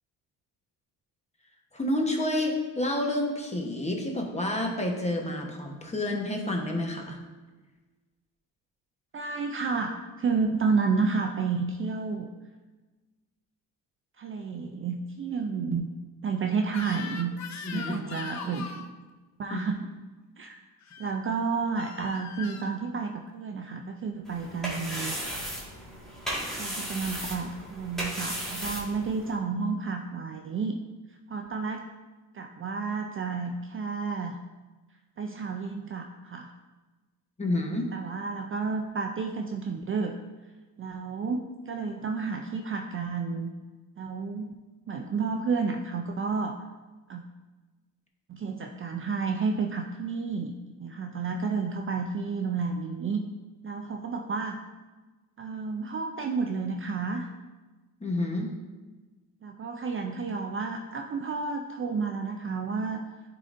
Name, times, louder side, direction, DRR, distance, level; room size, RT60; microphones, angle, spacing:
voice 1, 1.7-7.2 17.6-17.9 19.5-19.6 37.4-37.9 58.0-58.5, left 1 dB, 15° left, 2 dB, 1.0 m, -29 dB
voice 2, 9.1-12.3 14.2-15.9 16.2-17.3 17.7-18.9 19.4-19.8 20.4-20.6 21.0-25.2 26.6-30.8 31.1-31.8 32.3-34.4 35.2-36.5 37.9-40.2 40.8-43.5 44.0-44.5 44.9-46.6 47.1-47.2 48.3-53.2 53.6-54.6 55.4-57.3 59.4-63.0, right 4 dB, 35° right, 3 dB, 0.4 m, -31 dB
Crying sobbing / Screech, 16.7-18.9 20.8-21.1 21.8-22.7, left 6 dB, 45° left, 0.6 m, -40 dB
sound 1, 24.2-29.4, equal, ahead, 1.7 m, -35 dB
9.5 x 3.9 x 2.6 m, 1.2 s
cardioid pair, 85°, 39 cm